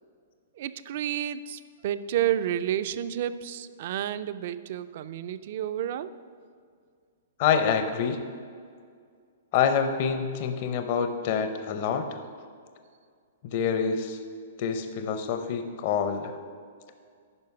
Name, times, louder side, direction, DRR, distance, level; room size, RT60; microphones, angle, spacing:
voice 1, 0.6-6.1, right 11 dB, 50° right, 14 dB, 0.4 m, -30 dB
voice 2, 7.4-8.2 9.5-12.2 13.4-14.2 14.6-16.4, left 7 dB, 45° left, 7 dB, 0.6 m, -26 dB
9.7 x 5.3 x 5.8 m, 2.1 s
hypercardioid pair, 150°, 0 cm